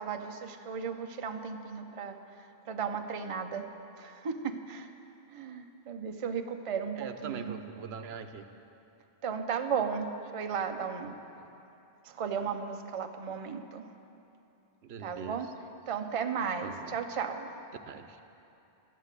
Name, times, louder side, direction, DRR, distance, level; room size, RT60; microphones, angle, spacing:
voice 1, 0.0-2.2 2.7-3.7 4.0-4.9 5.3-7.5 9.2-10.1 10.3-11.1 12.1-13.8 15.0-15.5 15.9-17.5, right 6 dB, 40° right, 6 dB, 0.6 m, -35 dB
voice 2, 6.9-8.4 11.0-11.1 14.8-15.4 16.6-17.0 17.9-18.2, right 7 dB, 85° right, 8 dB, 0.9 m, -42 dB
12.5 x 9.4 x 6.6 m, 2.8 s
omnidirectional pair, 1.0 m